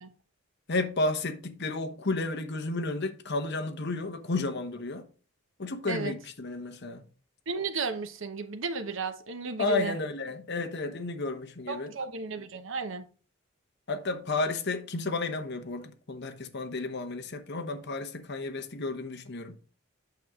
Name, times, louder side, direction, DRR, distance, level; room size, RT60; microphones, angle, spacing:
voice 1, 0.7-5.1 5.6-7.0 9.6-11.9 13.9-19.6, left 2 dB, 50° left, 0.9 m, -32 dB
voice 2, 7.5-10.0 11.7-13.1, right 4 dB, 65° right, 0.9 m, -34 dB
8.4 x 6.3 x 3.5 m
head